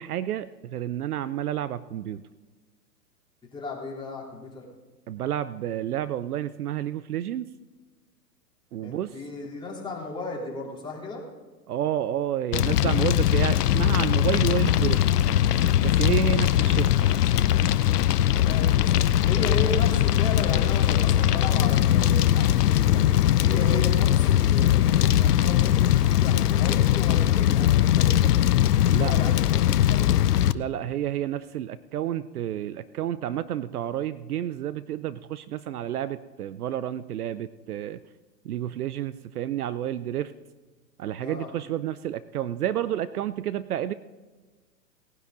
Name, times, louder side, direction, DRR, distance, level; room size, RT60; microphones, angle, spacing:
voice 1, 0.0-2.2 5.1-7.5 8.7-9.1 11.7-15.1 15.8-17.1 28.9-29.1 30.5-38.0 38.4-40.3 41.0-43.9, right 11 dB, 65° right, 15 dB, 0.6 m, -30 dB
voice 2, 3.5-4.6 8.8-11.2 18.3-19.0 19.3-23.1 23.4-28.3 28.8-30.3 41.2-41.5, left 2 dB, 10° left, -4 dB, 3.4 m, -35 dB
Fire, 12.5-30.5, left 12 dB, 65° left, 0.7 m, -21 dB
18.5 x 10.5 x 3.8 m, 1.3 s
hypercardioid pair, 120°, 50 cm